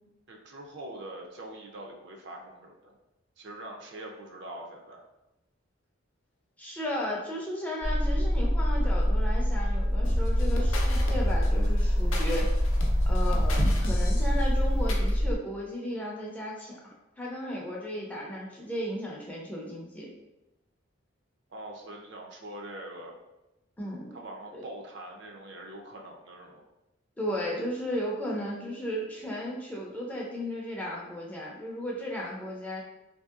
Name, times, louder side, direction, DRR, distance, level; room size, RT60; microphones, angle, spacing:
voice 1, 0.3-3.0 3.4-5.0 21.5-23.1 24.1-26.6, right 1 dB, 60° right, 1 dB, 0.5 m, -43 dB
voice 2, 6.6-12.5 13.1-20.1 23.8-24.1 24.5-24.7 27.2-32.8, equal, 10° left, -3 dB, 0.4 m, -35 dB
sound 1, 7.8-15.4, equal, 80° right, 1.3 m, -25 dB
sound 2, 10.1-15.1, left 1 dB, 75° left, 0.5 m, -35 dB
3.1 x 2.6 x 2.3 m, 0.95 s
head